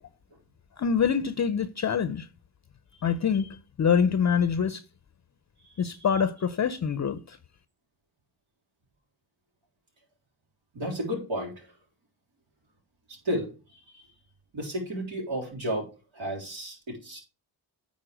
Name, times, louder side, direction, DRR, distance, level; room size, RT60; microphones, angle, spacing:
voice 1, 0.8-2.3 3.0-4.8 5.8-7.4, left 7 dB, 35° left, 0.6 m, -25 dB
voice 2, 10.7-11.7 13.1-14.1 14.5-17.2, equal, 75° right, 3.9 m, -33 dB
9.1 x 4.2 x 5.1 m
cardioid pair, 65°, 47 cm